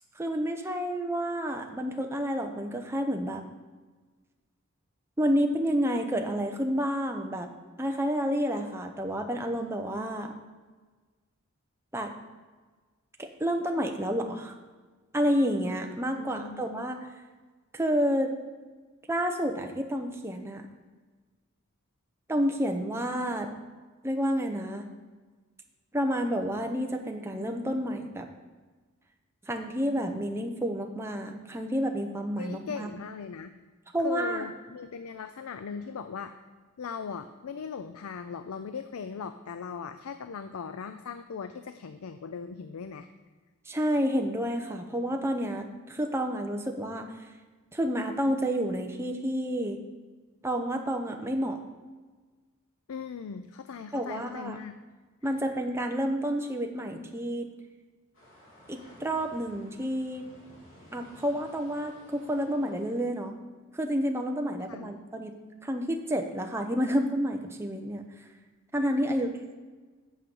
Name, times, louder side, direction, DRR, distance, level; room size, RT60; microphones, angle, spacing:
voice 1, 0.2-3.5 5.2-7.5 7.8-10.3 11.9-12.1 13.2-14.6 15.1-17.0 17.7-18.3 19.1-20.7 22.3-23.5 24.0-24.9 25.9-28.3 29.5-32.9 33.9-34.5 43.7-47.3 47.7-49.8 50.4-51.6 53.9-54.6 55.2-57.5 58.7-60.3 60.9-63.3 63.7-65.3 65.6-68.0 68.7-69.3, equal, 10° right, 3 dB, 0.7 m, -29 dB
voice 2, 16.2-17.1 32.4-33.5 34.0-36.4 36.8-43.1 52.9-54.8 64.7-64.9 69.0-69.3, left 6 dB, 90° left, 10 dB, 0.4 m, -39 dB
sound 1, 58.1-63.1, equal, 75° left, 3.3 m, -55 dB
8.5 x 6.4 x 5.4 m, 1.4 s
head